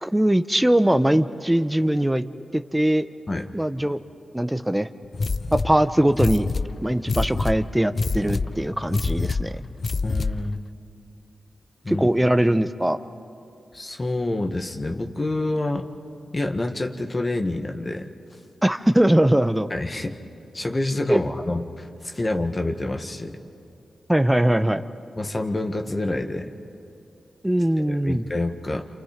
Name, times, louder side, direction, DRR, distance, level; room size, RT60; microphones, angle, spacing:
voice 1, 0.0-2.2 2.5-3.1 3.5-4.0 4.3-4.9 5.5-6.5 6.8-9.6 11.9-13.0 18.6-19.7 21.1-21.2 24.1-24.8 27.4-28.2, right 1 dB, 10° right, 11 dB, 1.0 m, -21 dB
sound 1, 5.1-10.6, left 3 dB, 55° left, 0.6 m, -27 dB
voice 2, 10.0-10.6 11.8-12.1 13.7-15.9 16.3-18.1 19.7-20.2 20.5-23.4 25.2-26.5 27.8-28.9, left 2 dB, 35° left, 4 dB, 1.6 m, -27 dB
28.5 x 28.0 x 5.2 m, 2.6 s
cardioid pair, 50°, 0 cm